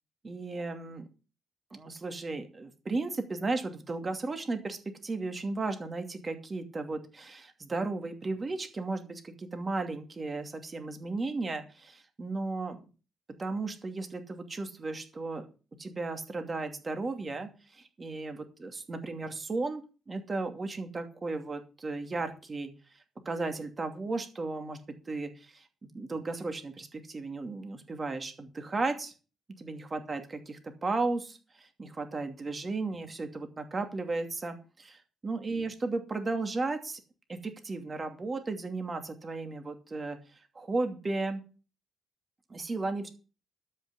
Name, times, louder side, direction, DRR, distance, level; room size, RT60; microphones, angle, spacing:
voice 1, 0.2-1.1 1.7-12.9 13.4-15.5 15.8-19.8 20.1-22.7 23.2-24.8 25.1-29.1 29.6-37.0 37.3-40.2 40.5-41.4 42.5-43.1, right 3 dB, 30° right, 6 dB, 2.6 m, -35 dB
12.5 x 5.8 x 8.1 m, 0.34 s
cardioid pair, 90°, 0 cm